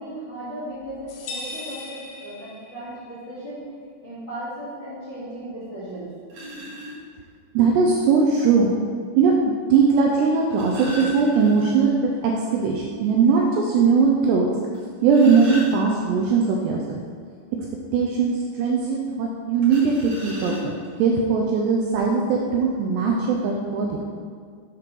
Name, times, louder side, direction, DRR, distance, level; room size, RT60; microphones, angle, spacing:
voice 1, 0.0-3.6 4.0-6.1, right 1 dB, 50° left, -11 dB, 1.4 m, -36 dB
sound 1, 1.1-3.0, left 2 dB, 75° left, 2.5 m, -37 dB
sound 2, 5.6-5.7 6.3-6.9 8.3-8.4 10.2-12.0 12.3-12.4 12.8-12.9 13.4-13.5 14.7-16.3 19.6-21.0 21.8-21.9 22.3-22.5, left 2 dB, 55° right, 2.5 m, -34 dB
voice 2, 7.5-8.7 9.2-14.5 15.0-17.0 17.9-24.0, right 5 dB, 80° right, -1 dB, 2.5 m, -20 dB
7.4 x 3.5 x 5.8 m, 2.1 s
omnidirectional pair, 5.4 m